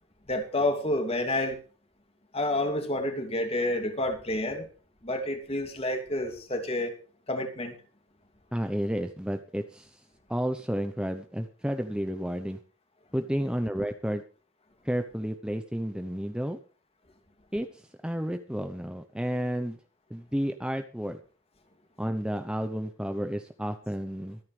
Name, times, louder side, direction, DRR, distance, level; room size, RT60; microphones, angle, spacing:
voice 1, 0.3-1.6 2.3-4.7 5.0-7.0 7.3-7.7, left 1 dB, 30° left, 2.7 m, -29 dB
voice 2, 8.5-12.6 13.1-14.2 14.8-16.6 17.5-19.8 20.1-21.2 22.0-24.4, equal, 5° right, 0.8 m, -31 dB
25.0 x 9.6 x 3.4 m
head